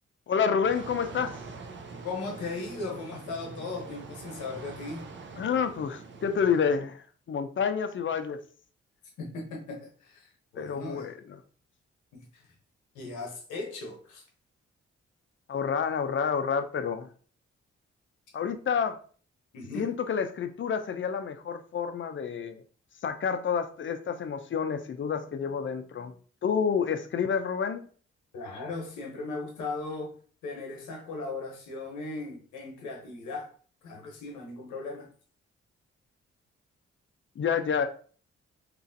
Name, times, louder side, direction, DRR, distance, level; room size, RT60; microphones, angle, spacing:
voice 1, 0.3-1.3 5.4-8.4 10.6-11.4 15.5-17.1 18.3-19.0 19.7-22.6 23.0-26.1 26.4-27.9 37.4-37.9, left 6 dB, 45° left, 0.5 m, -29 dB
sound 1, 0.6-6.8, right 4 dB, 40° right, 0.6 m, -44 dB
voice 2, 2.0-5.1 9.2-11.1 12.1-12.5 12.9-14.2 19.5-19.9 28.3-30.2 30.4-33.5 33.8-35.1, left 3 dB, 90° left, 0.8 m, -38 dB
3.0 x 2.4 x 2.6 m
supercardioid pair, 45°, 29 cm